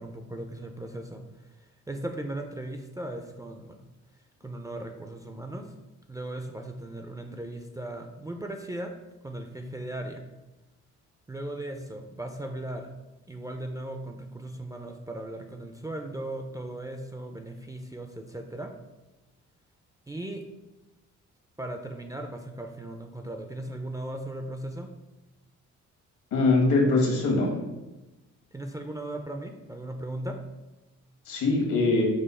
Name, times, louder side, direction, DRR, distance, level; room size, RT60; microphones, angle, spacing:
voice 1, 0.0-1.5 1.9-3.9 4.4-5.7 6.1-8.9 9.2-10.2 11.3-12.9 13.3-18.7 20.1-20.4 21.6-24.9 28.5-30.4, right 1 dB, 10° right, 4 dB, 0.3 m, -37 dB
voice 2, 26.3-27.5 31.3-32.1, left 3 dB, 80° left, -1 dB, 1.4 m, -22 dB
5.3 x 2.0 x 4.2 m, 1.0 s
cardioid pair, 90°, 30 cm